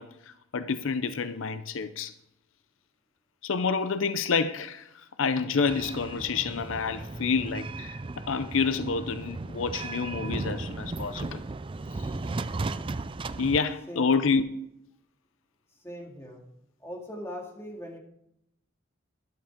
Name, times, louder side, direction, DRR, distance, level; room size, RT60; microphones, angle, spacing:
voice 1, 0.0-2.1 3.4-11.4 12.0-12.1 13.4-14.4, left 5 dB, 80° left, 0.6 m, -28 dB
sound 1, 5.7-13.6, right 3 dB, 25° right, 0.4 m, -36 dB
voice 2, 15.8-16.4 16.8-18.0, equal, 15° left, 2.2 m, -40 dB
12.5 x 11.5 x 3.7 m
head